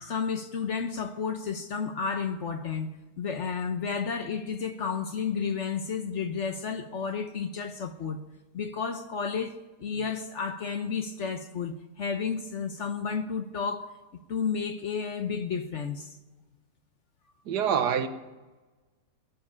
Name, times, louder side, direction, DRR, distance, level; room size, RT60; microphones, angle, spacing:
voice 1, 0.0-2.9 3.2-8.2 8.5-14.0 14.3-16.2, left 6 dB, 55° left, 1.0 m, -32 dB
voice 2, 17.5-18.1, right 8 dB, 75° right, 1.5 m, -25 dB
17.0 x 7.8 x 9.6 m
omnidirectional pair, 1.8 m